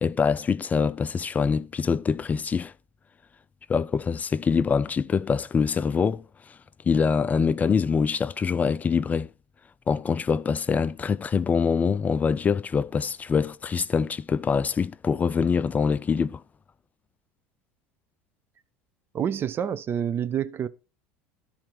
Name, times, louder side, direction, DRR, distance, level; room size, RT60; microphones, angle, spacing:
voice 1, 0.0-2.7 3.7-6.2 6.9-9.3 9.9-16.4, left 6 dB, 25° left, 0.4 m, -24 dB
voice 2, 19.1-20.7, right 9 dB, 40° right, 0.7 m, -27 dB
12.0 x 4.3 x 6.2 m
supercardioid pair, 95°, 6 cm